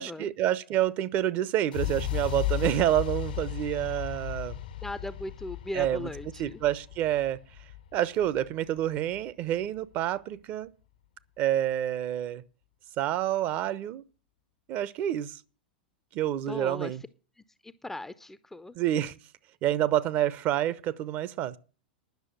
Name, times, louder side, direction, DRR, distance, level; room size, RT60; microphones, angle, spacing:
voice 1, 0.0-4.6 5.7-6.1 6.4-7.4 7.9-10.7 11.4-12.4 13.0-14.0 14.7-15.3 16.1-17.0 18.8-19.1 19.6-21.6, right 12 dB, 35° right, 0.8 m, -28 dB
sound 1, 1.7-9.6, left 12 dB, 60° left, 0.9 m, -35 dB
voice 2, 4.8-6.6 16.5-17.0 17.6-18.8, left 2 dB, 5° left, 0.6 m, -38 dB
10.5 x 6.4 x 9.0 m
figure-of-eight pair, 95°, 5 cm